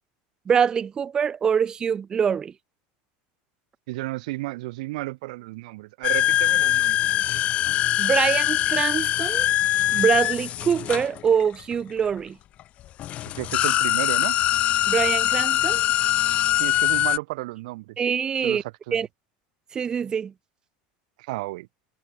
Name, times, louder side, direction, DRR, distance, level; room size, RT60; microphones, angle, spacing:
voice 1, 0.5-2.5 8.0-9.5 9.9-12.4 14.9-15.8 18.0-18.6 18.9-19.1 19.7-20.3, right 7 dB, 20° right, 0.7 m, -24 dB
voice 2, 3.9-7.0 13.4-14.4 16.6-18.0 18.4-19.0 21.2-21.7, right 20 dB, 75° right, 1.5 m, -33 dB
sound 1, 6.0-11.7 12.6-12.7 13.0-17.2, left 13 dB, 30° left, 0.5 m, -22 dB
supercardioid pair, 165°, 4 cm